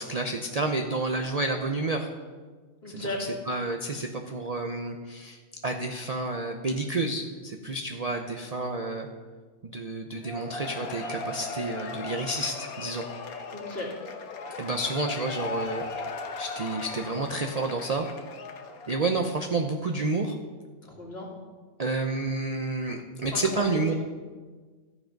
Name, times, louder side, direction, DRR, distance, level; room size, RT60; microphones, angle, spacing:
voice 1, 0.0-2.1 2.9-9.1 9.6-13.0 14.5-15.8 16.4-18.1 18.9-20.4 21.8-23.9, right 2 dB, 40° right, 4 dB, 0.6 m, -30 dB
voice 2, 2.8-3.2 13.5-13.9 20.8-21.3 23.3-23.9, left 1 dB, 45° left, -3 dB, 2.6 m, -35 dB
Cheering / Applause / Crowd, 10.2-19.1, left 3 dB, 85° left, 1.4 m, -37 dB
13.0 x 7.7 x 5.2 m, 1.4 s
omnidirectional pair, 1.5 m